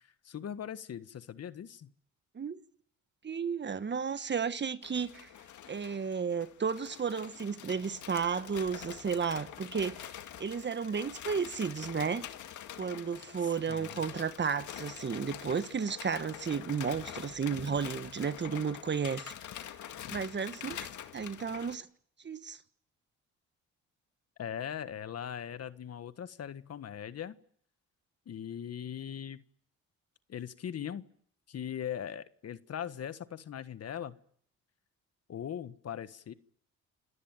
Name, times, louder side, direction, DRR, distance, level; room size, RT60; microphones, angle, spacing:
voice 1, 0.0-1.9 13.7-14.0 24.4-27.3 28.2-29.4 30.3-31.1 31.5-34.2 35.3-36.3, left 9 dB, 55° left, 1.5 m, -40 dB
voice 2, 3.2-5.3 5.7-10.1 10.4-12.3 12.8-19.3 20.1-20.9 21.1-21.9 22.2-22.6, right 6 dB, 35° right, 1.5 m, -33 dB
sound 1, 4.8-21.7, left 11 dB, 75° left, 2.1 m, -45 dB
28.0 x 18.5 x 9.2 m
cardioid pair, 90°, 30 cm